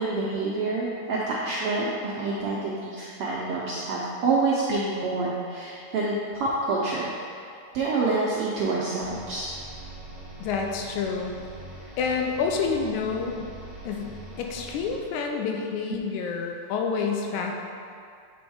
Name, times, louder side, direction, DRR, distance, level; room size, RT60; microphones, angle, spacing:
voice 1, 0.0-7.1 7.7-9.5, right 3 dB, 80° right, -5 dB, 1.3 m, -27 dB
sound 1, 9.0-15.3, right 2 dB, 40° right, 0.4 m, -43 dB
voice 2, 10.4-11.3 12.0-13.4 13.9-17.5, left 5 dB, 90° left, 2 dB, 2.1 m, -28 dB
7.9 x 3.5 x 4.7 m, 2.3 s
omnidirectional pair, 3.5 m